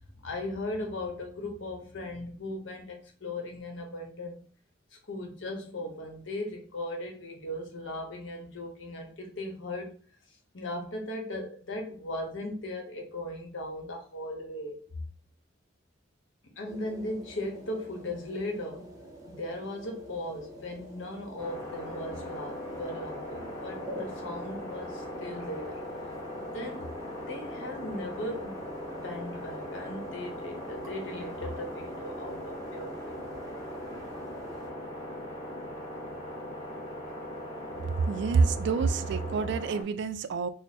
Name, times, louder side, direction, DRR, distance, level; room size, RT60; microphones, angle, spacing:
voice 1, 0.1-4.4 4.9-10.0 10.3-15.0 16.6-18.9 19.3-25.8 26.5-26.9 27.3-28.6 28.9-33.3, left 1 dB, 75° left, 0.9 m, -38 dB
sound 1, 16.7-34.7, right 1 dB, 15° right, 0.7 m, -48 dB
sound 2, 21.4-39.8, left 1 dB, 15° left, 1.0 m, -39 dB
voice 2, 38.1-40.5, right 4 dB, 60° right, 0.3 m, -27 dB
3.4 x 2.0 x 4.1 m
head